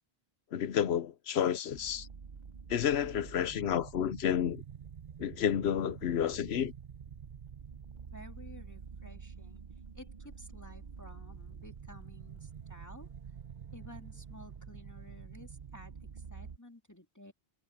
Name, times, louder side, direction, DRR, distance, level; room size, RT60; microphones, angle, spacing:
voice 1, 0.5-2.1 2.7-4.6 5.2-6.7, left 9 dB, 80° left, 1.0 m, -30 dB
sound 1, 1.7-16.6, right 6 dB, 45° right, 0.9 m, -48 dB
voice 2, 8.0-9.6 9.9-13.1 13.7-17.3, left 1 dB, 15° left, 2.2 m, -53 dB
omnidirectional pair, 1.1 m